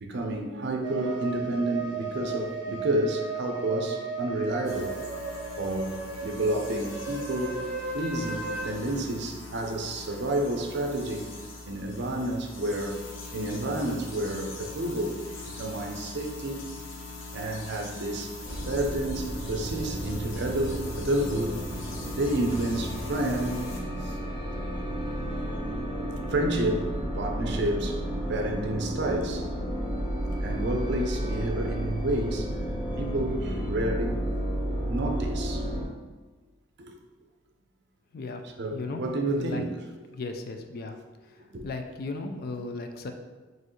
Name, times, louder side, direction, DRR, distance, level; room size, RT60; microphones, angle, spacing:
voice 1, 0.0-5.0 5.6-7.6 7.9-11.3 11.7-15.2 15.5-16.7 17.3-18.3 18.7-23.7 24.0-24.2 26.2-29.5 30.3-34.2 34.9-35.6 36.8-36.9 38.6-39.8 41.5-41.7, right 1 dB, 60° right, 3 dB, 0.6 m, -30 dB
sound 1, 0.8-8.6, right 4 dB, 20° right, 1.1 m, -35 dB
sound 2, 4.6-23.8, left 3 dB, 80° left, 0.8 m, -42 dB
sound 3, 18.4-35.8, equal, 25° left, 0.9 m, -32 dB
voice 2, 38.7-39.6 40.1-41.0 41.6-43.1, left 3 dB, 50° left, 5 dB, 0.4 m, -35 dB
4.5 x 3.1 x 3.1 m, 1.3 s
head